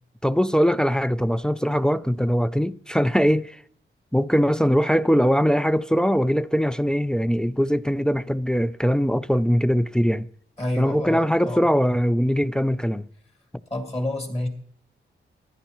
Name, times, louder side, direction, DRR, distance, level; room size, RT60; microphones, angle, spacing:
voice 1, 0.2-3.6 4.1-10.3 10.8-13.1, equal, 5° left, 0.3 m, -21 dB
voice 2, 10.6-11.7 13.7-14.5, left 1 dB, 30° left, 2.3 m, -28 dB
14.5 x 11.0 x 3.0 m
cardioid pair, 85°, 21 cm